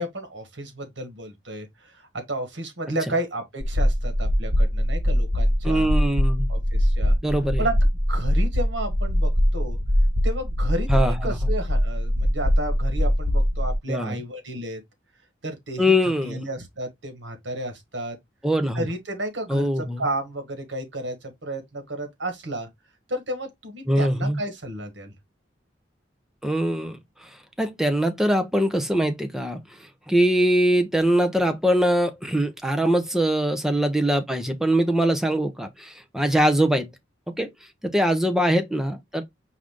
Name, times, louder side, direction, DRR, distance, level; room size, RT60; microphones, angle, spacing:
voice 1, 0.0-5.9 6.5-7.2 7.6-7.8 8.1-9.8 10.2-14.8 15.4-15.8 16.2-18.2 18.7-22.7 23.1-25.1 38.1-38.3, right 1 dB, 85° right, 1.5 m, -32 dB
sound 1, 3.6-13.7, equal, 35° right, 1.1 m, -22 dB
voice 2, 5.6-6.5 7.2-7.7 10.9-11.4 13.9-14.2 15.8-16.4 18.4-18.9 19.5-20.0 23.9-24.4 26.4-27.0 27.6-29.6 30.1-36.9 37.4-37.5 37.8-39.2, equal, 5° right, 0.6 m, -22 dB
4.8 x 2.6 x 3.6 m
head